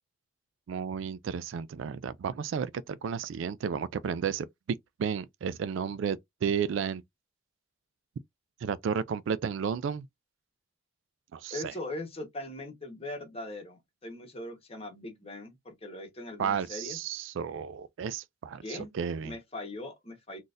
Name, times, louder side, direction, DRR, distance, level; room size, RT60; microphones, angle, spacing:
voice 1, 0.7-7.0 8.6-10.1 11.3-11.7 16.4-19.4, right 7 dB, 70° right, 0.3 m, -33 dB
voice 2, 11.5-17.0 18.6-18.9 19.2-20.4, left 1 dB, 30° left, 1.1 m, -40 dB
3.9 x 2.5 x 2.5 m
head